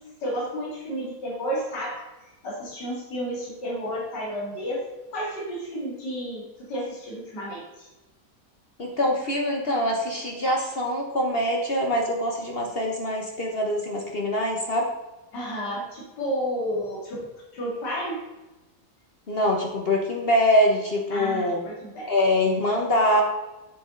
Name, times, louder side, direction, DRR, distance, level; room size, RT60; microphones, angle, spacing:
voice 1, 0.2-2.0 2.4-4.8 5.1-7.9 15.3-17.2 17.5-18.2 21.1-22.1, equal, 75° left, -5 dB, 2.8 m, -31 dB
voice 2, 8.8-14.9 19.3-21.6 22.1-23.2, left 1 dB, 40° left, 0 dB, 1.0 m, -24 dB
7.5 x 7.0 x 3.7 m, 1.1 s
omnidirectional pair, 1.9 m